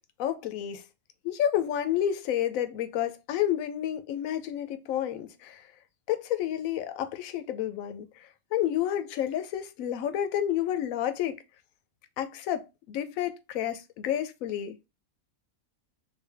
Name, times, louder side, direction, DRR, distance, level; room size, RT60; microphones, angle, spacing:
voice 1, 0.2-0.8 1.2-5.6 6.1-11.4 12.2-14.9, left 11 dB, 75° left, 1.0 m, -30 dB
3.3 x 2.5 x 3.3 m
omnidirectional pair, 1.5 m